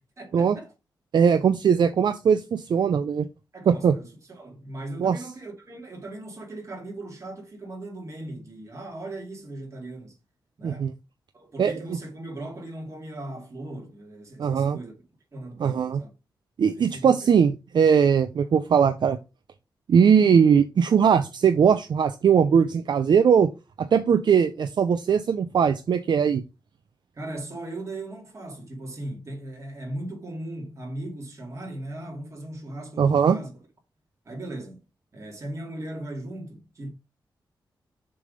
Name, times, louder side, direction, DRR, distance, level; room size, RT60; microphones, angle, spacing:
voice 1, 0.2-0.7 3.5-10.2 10.6-10.9 11.3-14.9 15.3-16.1 16.7-17.3 27.1-33.5 34.2-34.8 35.1-36.9, right 1 dB, 35° right, 2.4 m, -38 dB
voice 2, 1.1-3.3 3.7-3.9 5.0-5.2 10.6-10.9 11.6-11.7 14.4-14.8 15.6-16.0 16.6-19.2 19.9-23.5 23.8-26.4 33.0-33.4, right 7 dB, 65° right, 0.5 m, -20 dB
6.9 x 3.4 x 5.2 m
wide cardioid pair, 145°, 8 cm